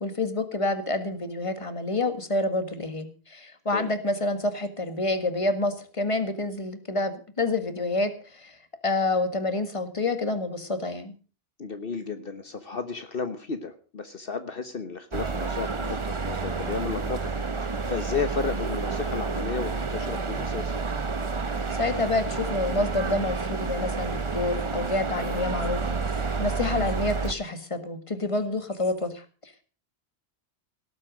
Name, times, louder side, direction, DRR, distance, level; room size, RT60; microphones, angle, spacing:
voice 1, 0.0-8.6 8.8-11.1 21.7-25.8 26.4-29.6, left 2 dB, 30° left, 9 dB, 1.8 m, -28 dB
voice 2, 11.6-17.3 17.6-20.8, left 5 dB, 60° left, 8 dB, 1.3 m, -33 dB
sound 1, 15.1-27.3, right 4 dB, 30° right, 1.0 m, -30 dB
18.0 x 8.3 x 6.3 m, 0.38 s
omnidirectional pair, 1.1 m